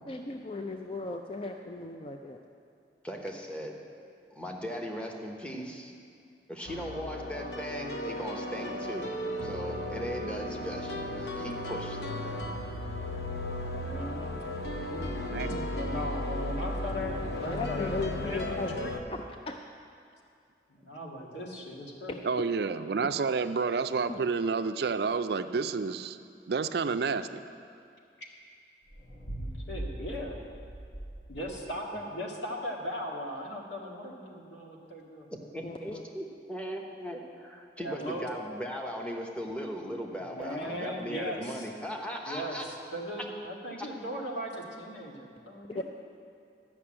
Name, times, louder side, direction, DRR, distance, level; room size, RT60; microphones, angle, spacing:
voice 1, 0.1-2.4 14.9-15.2 17.4-18.7 19.1-19.6 24.1-24.2 35.6-36.0 45.7-45.8, left 2 dB, 30° left, 4 dB, 0.4 m, -37 dB
voice 2, 3.0-3.8 4.3-5.9 6.5-9.1 9.4-12.0 35.5-42.6 43.8-43.9, equal, 5° left, 1 dB, 0.9 m, -38 dB
sound 1, 6.7-19.0, left 1 dB, 65° left, 0.8 m, -35 dB
voice 3, 13.5-14.4 15.4-18.9 20.7-22.2 29.4-30.4 31.3-35.3 37.8-38.3 40.1-41.7 42.3-45.8, equal, 85° left, -1 dB, 1.8 m, -38 dB
voice 4, 15.3-15.7 22.2-26.2 26.5-27.4, right 5 dB, 60° right, 11 dB, 0.4 m, -29 dB
sound 2, 28.9-31.7, right 1 dB, 50° left, 1.2 m, -41 dB
12.5 x 6.0 x 8.6 m, 2.4 s
head